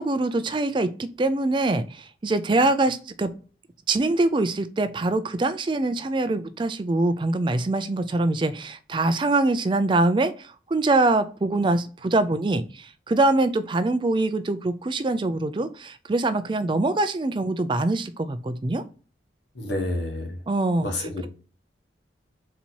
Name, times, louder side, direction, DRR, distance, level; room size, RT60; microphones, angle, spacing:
voice 1, 0.0-3.3 3.9-18.8 20.5-21.3, right 2 dB, 25° right, 11 dB, 0.3 m, -24 dB
voice 2, 19.6-20.4 20.8-21.3, left 1 dB, 80° left, 2 dB, 1.2 m, -29 dB
4.2 x 2.8 x 4.4 m, 0.38 s
head